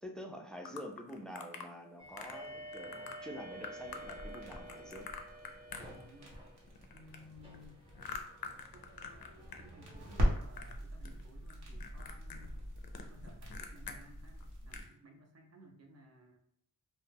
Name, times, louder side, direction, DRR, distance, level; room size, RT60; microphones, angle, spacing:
voice 1, 0.0-5.1, equal, ahead, 3 dB, 0.3 m, -47 dB
sound 1, 0.7-1.7 2.2-2.5 2.7-3.2 3.6-6.4 6.7-9.6 9.9-10.8 11.0-11.5 11.8-14.0 14.4-14.5 14.7-14.9, left 6 dB, 65° left, 0.5 m, -46 dB
sound 2, 2.0-10.2, right 1 dB, 15° right, 0.8 m, -51 dB
sound 3, 3.8-14.9, equal, 80° right, 0.9 m, -41 dB
voice 2, 5.8-6.4 6.9-7.8 8.7-12.6 13.0-16.4, equal, 40° right, 2 dB, 0.6 m, -58 dB
2.2 x 2.1 x 3.2 m, 0.69 s
cardioid pair, 60°, 39 cm